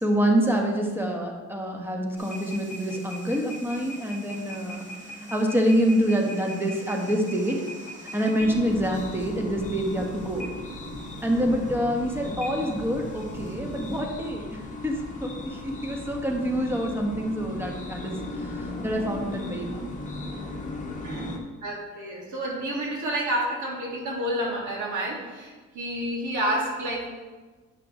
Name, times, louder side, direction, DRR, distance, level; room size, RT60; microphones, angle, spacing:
voice 1, 0.0-4.8 5.3-7.6 8.1-10.5 11.2-18.2 18.4-19.9, equal, 5° right, 1 dB, 1.2 m, -26 dB
sound 1, 2.2-14.0, right 1 dB, 25° right, 1.6 m, -41 dB
sound 2, 8.4-21.4, left 2 dB, 25° left, 1.1 m, -37 dB
voice 2, 21.6-27.1, right 1 dB, 80° right, -3 dB, 2.1 m, -29 dB
8.7 x 5.7 x 3.1 m, 1.3 s
cardioid pair, 90°, 30 cm